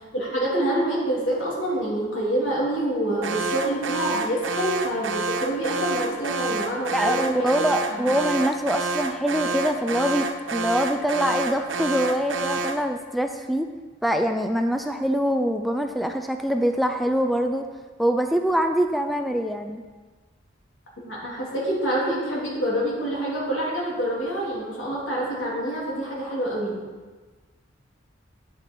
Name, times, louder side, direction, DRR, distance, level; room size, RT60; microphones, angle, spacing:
voice 1, 0.0-8.0 21.0-26.8, right 1 dB, 85° left, -5 dB, 3.3 m, -27 dB
Alarm, 3.2-12.9, right 3 dB, 75° right, 0.7 m, -29 dB
voice 2, 6.9-13.7 14.0-17.7 18.0-19.8, equal, ahead, 5 dB, 0.4 m, -24 dB
9.9 x 6.6 x 4.6 m, 1.3 s
head